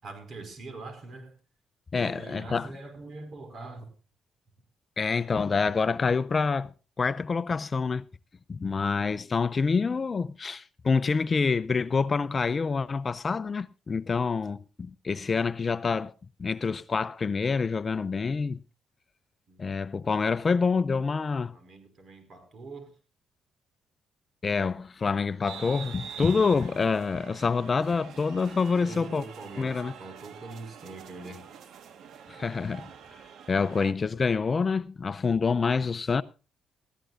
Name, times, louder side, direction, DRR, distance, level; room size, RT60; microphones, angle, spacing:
voice 1, 0.0-1.3 2.0-3.9 19.5-19.6 21.5-22.9 28.8-31.5, right 3 dB, 50° right, 5.1 m, -43 dB
voice 2, 1.9-2.7 5.0-6.7 7.0-8.1 8.5-16.1 16.4-18.6 19.6-21.5 24.4-29.2 29.6-29.9 32.3-32.9 33.5-36.2, left 5 dB, 35° left, 0.6 m, -27 dB
sound 1, 25.4-33.9, right 8 dB, 70° right, 1.4 m, -45 dB
19.5 x 15.0 x 2.5 m
cardioid pair, 90°, 0 cm